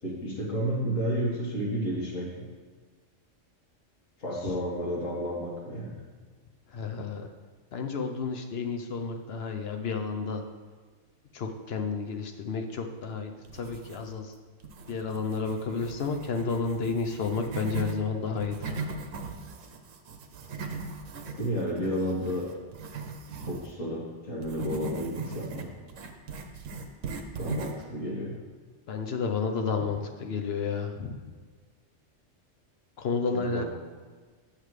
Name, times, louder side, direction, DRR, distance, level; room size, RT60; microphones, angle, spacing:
voice 1, 0.0-2.5 4.2-6.0 21.4-22.5 23.5-25.7 27.4-28.3 33.3-33.7, equal, 80° left, -4 dB, 2.0 m, -31 dB
voice 2, 6.7-7.3 7.7-10.4 11.3-14.3 14.9-18.7 28.9-31.2 33.0-33.7, left 5 dB, 60° left, 4 dB, 0.8 m, -31 dB
sound 1, 13.4-14.3 14.6-18.0 18.3-23.7 24.4-27.9, right 4 dB, 75° right, 1.1 m, -39 dB
8.9 x 6.6 x 3.2 m, 1.5 s
omnidirectional pair, 1.3 m